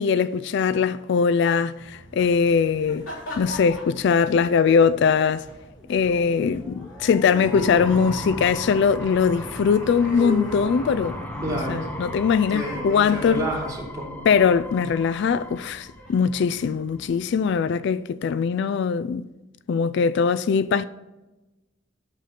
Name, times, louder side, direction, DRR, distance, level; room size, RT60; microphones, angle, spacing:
voice 1, 0.0-3.1 3.4-5.5 5.9-11.2 11.7-13.4 14.3-19.3 19.7-20.8, left 6 dB, 60° left, 0.3 m, -21 dB
sound 1, 1.8-17.4, equal, 85° left, 3.6 m, -40 dB
sound 2, 5.7-16.6, equal, 10° left, 0.9 m, -37 dB
voice 2, 11.4-11.9 12.5-14.3, right 1 dB, 20° right, 3.0 m, -30 dB
8.3 x 6.7 x 5.8 m
head